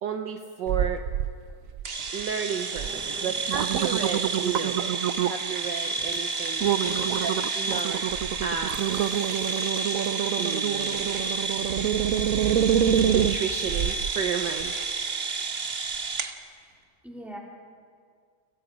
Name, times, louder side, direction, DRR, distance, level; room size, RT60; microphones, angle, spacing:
voice 1, 0.0-1.0 2.1-6.6 7.2-8.0 8.4-9.7 10.4-11.1 13.0-14.8, right 7 dB, 65° right, 5 dB, 1.4 m, -33 dB
sound 1, 0.7-1.3 1.7-2.2 2.8-2.9 3.3-5.5 6.0-6.2 6.6-14.1 14.6-14.7, right 9 dB, 85° right, 0.7 m, -26 dB
sound 2, 1.8-16.3, right 4 dB, 40° right, 1.1 m, -31 dB
voice 2, 2.8-3.4 6.6-7.0 16.5-16.7 17.0-17.4, equal, ahead, -3 dB, 3.6 m, -43 dB
30.0 x 18.0 x 5.0 m, 2.1 s
omnidirectional pair, 2.2 m